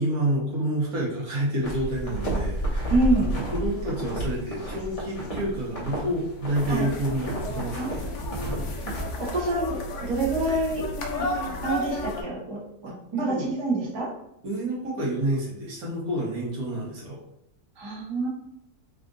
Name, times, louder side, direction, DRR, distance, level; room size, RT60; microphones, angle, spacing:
voice 1, 0.0-8.1 12.9-13.0 13.3-13.5 14.4-17.2, right 1 dB, 60° right, -4 dB, 1.5 m, -29 dB
sound 1, 1.6-9.0, right 1 dB, 25° left, 0.8 m, -31 dB
voice 2, 2.9-3.3 6.7-6.9 7.8-8.6 9.2-11.3 11.6-12.6 13.1-14.1 17.8-18.3, right 2 dB, 20° right, -4 dB, 0.7 m, -27 dB
sound 2, 6.5-12.2, left 1 dB, 65° left, 0.8 m, -33 dB
3.5 x 2.5 x 3.7 m, 0.80 s
omnidirectional pair, 1.8 m